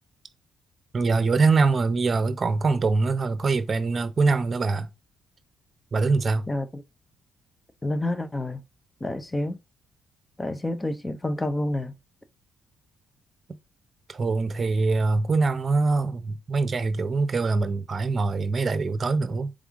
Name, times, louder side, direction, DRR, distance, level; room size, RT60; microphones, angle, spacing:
voice 1, 0.9-4.9 5.9-6.5 14.1-19.5, right 3 dB, 40° right, 0.7 m, -23 dB
voice 2, 6.5-6.8 7.8-8.6 9.0-9.6 10.4-11.9, left 1 dB, 15° left, 0.7 m, -28 dB
3.6 x 3.5 x 3.6 m
cardioid pair, 90°, 0 cm